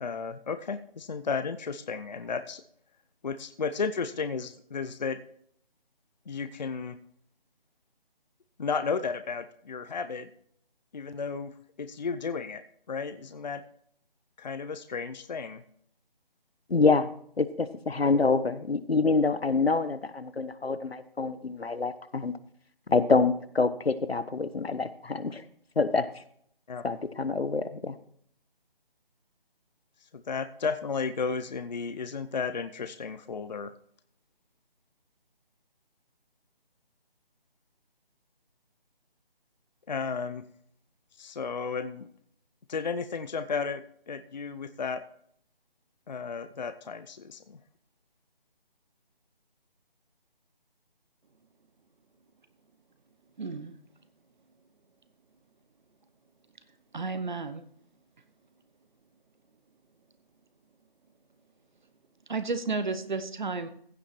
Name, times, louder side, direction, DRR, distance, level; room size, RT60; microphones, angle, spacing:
voice 1, 0.0-2.6 3.2-5.2 6.3-7.0 8.6-10.3 10.9-12.6 12.9-13.6 14.4-15.6 26.7-26.8 30.0-33.7 39.9-40.4 41.2-42.1 42.7-45.0 46.1-47.6, left 5 dB, 45° left, 11 dB, 0.7 m, -33 dB
voice 2, 16.7-17.1 17.4-22.3 22.9-25.4 25.8-26.1 26.8-28.0, left 4 dB, 90° left, 14 dB, 1.1 m, -26 dB
voice 3, 53.4-53.8 56.9-57.7 62.3-63.7, right 4 dB, 50° right, 11 dB, 1.1 m, -32 dB
15.5 x 7.1 x 4.5 m, 0.65 s
figure-of-eight pair, 155°, 30 cm